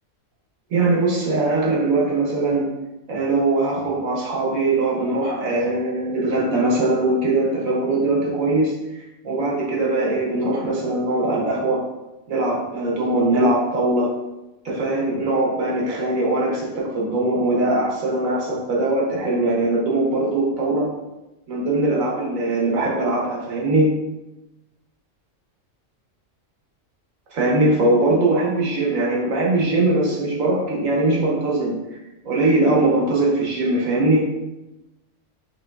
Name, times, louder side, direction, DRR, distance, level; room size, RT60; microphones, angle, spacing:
voice 1, 0.7-2.7 3.1-11.8 12.3-14.1 14.6-20.9 21.5-23.9 27.3-32.0 32.2-34.3, right 2 dB, 80° right, -3 dB, 1.5 m, -21 dB
5.5 x 3.0 x 2.4 m, 0.98 s
omnidirectional pair, 1.4 m